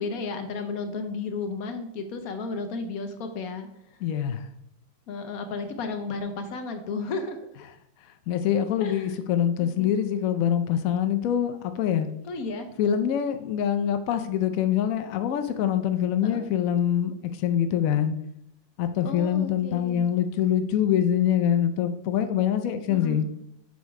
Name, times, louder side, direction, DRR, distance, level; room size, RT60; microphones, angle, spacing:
voice 1, 0.0-4.0 5.1-7.4 8.8-9.3 9.6-9.9 12.2-12.7 16.2-16.4 19.0-20.0 22.9-23.3, left 4 dB, 55° left, 6 dB, 1.1 m, -33 dB
voice 2, 4.0-4.4 8.3-12.1 12.8-17.1 17.4-18.1 18.8-23.2, left 9 dB, 85° left, 8 dB, 0.7 m, -24 dB
6.2 x 5.2 x 4.7 m, 0.78 s
omnidirectional pair, 2.1 m